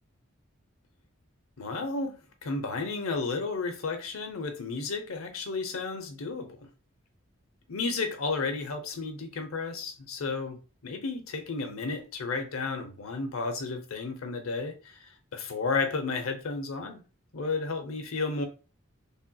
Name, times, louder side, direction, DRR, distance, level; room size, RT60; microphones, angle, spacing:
voice 1, 1.6-6.6 7.7-10.6 10.8-17.0 17.3-18.4, left 4 dB, 85° left, 0.7 m, -32 dB
3.4 x 2.7 x 2.2 m
head